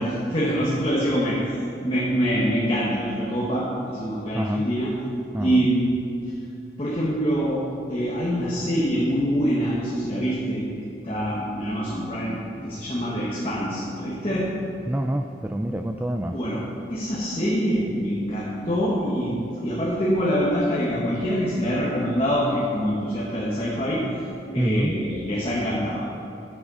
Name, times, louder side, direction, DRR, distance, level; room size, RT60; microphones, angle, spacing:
voice 1, 0.0-1.4 1.8-4.9 5.4-6.1 6.8-7.6 7.9-14.5 16.3-16.6 16.9-24.0 24.5-26.0, equal, 30° left, -6 dB, 1.4 m, -25 dB
voice 2, 4.3-4.6 5.3-5.7 14.9-16.4 24.6-25.0, right 1 dB, 10° right, 5 dB, 0.3 m, -27 dB
9.9 x 7.4 x 5.6 m, 2.6 s
head